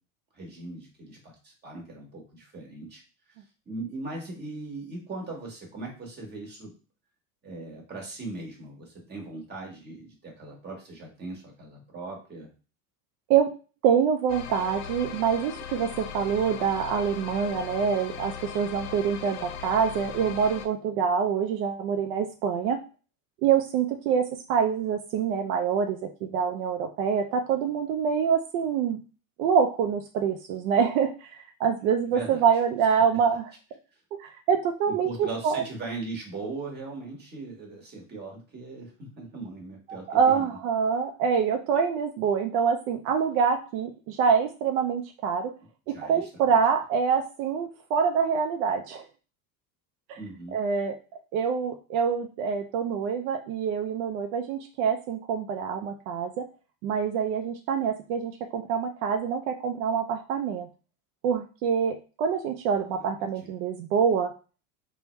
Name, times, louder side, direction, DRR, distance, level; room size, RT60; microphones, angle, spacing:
voice 1, 0.3-3.0 3.3-3.4 3.7-6.7 7.4-12.5 32.1-32.4 33.1-33.2 34.9-40.5 45.9-46.6 50.2-50.6 62.9-63.3, right 3 dB, 25° right, -1 dB, 1.3 m, -39 dB
voice 2, 13.8-22.8 23.4-29.0 29.4-33.5 34.2-35.6 39.9-45.5 45.9-49.0 50.1-50.2 50.5-50.9 51.3-56.5 56.8-60.7 61.2-64.3, right 7 dB, 70° right, 4 dB, 0.5 m, -26 dB
sound 1, 14.3-20.7, left 8 dB, 75° left, 0.6 m, -39 dB
3.3 x 2.2 x 3.0 m, 0.35 s
supercardioid pair, 130°, 43 cm